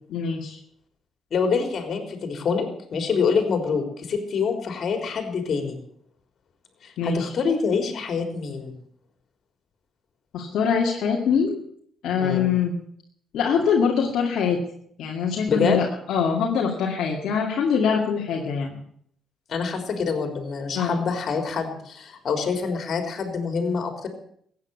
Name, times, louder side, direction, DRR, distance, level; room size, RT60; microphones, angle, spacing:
voice 1, 0.1-0.6 7.0-7.3 10.3-11.6 12.0-12.7 13.3-14.6 15.0-18.8 20.7-21.0, left 6 dB, 75° left, -1 dB, 2.2 m, -23 dB
voice 2, 1.3-5.8 6.8-8.7 12.2-12.5 15.5-15.8 19.5-24.1, left 5 dB, 55° left, 5 dB, 3.8 m, -26 dB
15.0 x 9.5 x 8.2 m, 0.65 s
cardioid pair, 90°, 0 cm